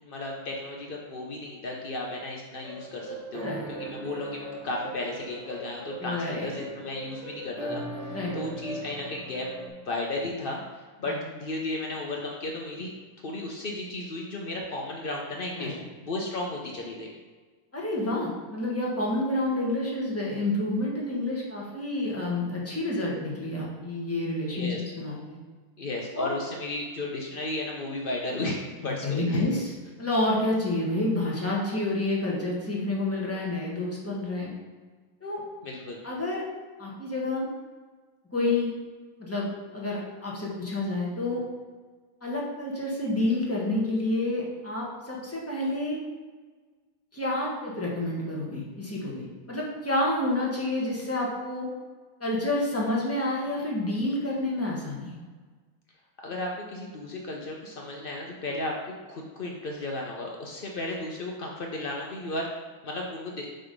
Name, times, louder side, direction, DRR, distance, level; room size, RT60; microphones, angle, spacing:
voice 1, 0.0-9.5 9.8-10.6 11.0-12.9 13.2-17.1 24.5-24.8 25.8-29.4 35.6-36.0 56.2-62.5 62.8-63.5, left 2 dB, 85° left, -1 dB, 0.4 m, -34 dB
sound 1, 2.6-9.7, right 1 dB, 60° right, 1.7 m, -39 dB
voice 2, 3.4-3.7 6.0-6.6 8.1-8.4 11.1-11.2 15.6-15.7 17.7-25.4 26.1-26.4 28.8-29.7 30.0-34.5 35.2-35.4 36.0-36.4 36.8-37.5 38.3-38.7 39.2-41.4 42.2-46.0 47.1-51.7 52.2-55.2, left 2 dB, 10° left, -4 dB, 1.1 m, -29 dB
7.6 x 3.4 x 5.3 m, 1.4 s
omnidirectional pair, 2.1 m